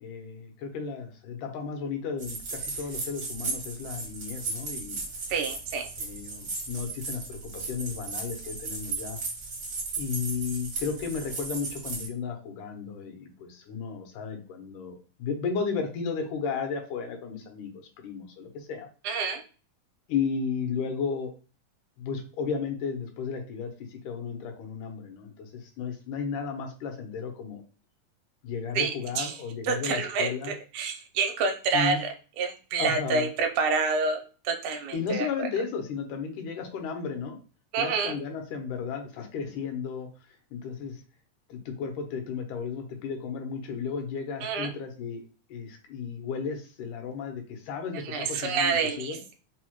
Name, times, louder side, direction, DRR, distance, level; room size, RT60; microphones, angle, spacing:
voice 1, 0.0-5.1 6.0-9.2 10.0-18.9 20.1-21.3 22.0-27.6 28.4-30.5 31.7-32.0 32.8-33.3 34.9-37.4 37.8-41.0 41.5-49.2, left 5 dB, 85° left, 4 dB, 2.3 m, -34 dB
sound 1, 2.2-12.1, right 4 dB, 70° right, 0.9 m, -36 dB
voice 2, 5.3-5.8 19.0-19.4 28.8-29.3 29.7-30.3 30.7-32.1 32.4-35.3 37.7-38.1 44.4-44.7 48.1-49.3, right 4 dB, 85° right, 4 dB, 2.1 m, -28 dB
5.2 x 2.1 x 2.9 m, 0.36 s
omnidirectional pair, 3.5 m